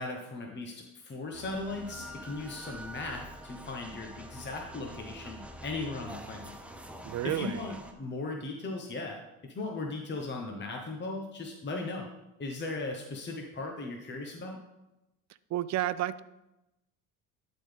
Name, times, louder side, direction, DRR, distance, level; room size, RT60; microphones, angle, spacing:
voice 1, 0.0-6.5 7.2-9.2 9.5-12.1 12.4-14.6, left 3 dB, 25° left, 1 dB, 1.1 m, -37 dB
sound 1, 1.3-7.9, right 1 dB, 5° right, 0.7 m, -46 dB
voice 2, 7.0-7.8 15.5-16.2, right 13 dB, 40° right, 16 dB, 0.5 m, -31 dB
12.0 x 4.1 x 3.5 m, 0.95 s
hypercardioid pair, 75°, 42 cm